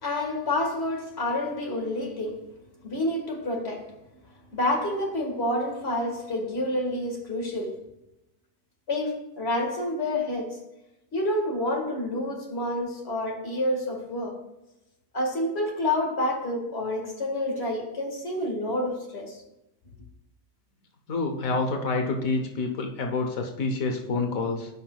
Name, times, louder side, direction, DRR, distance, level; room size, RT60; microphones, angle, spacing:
voice 1, 0.0-2.5 2.8-3.9 4.5-7.9 8.9-10.6 11.1-14.4 15.1-19.4, left 1 dB, 50° left, 2.0 m, -28 dB
voice 2, 21.1-24.7, left 3 dB, 80° left, 1.4 m, -27 dB
14.0 x 5.9 x 2.3 m
omnidirectional pair, 1.4 m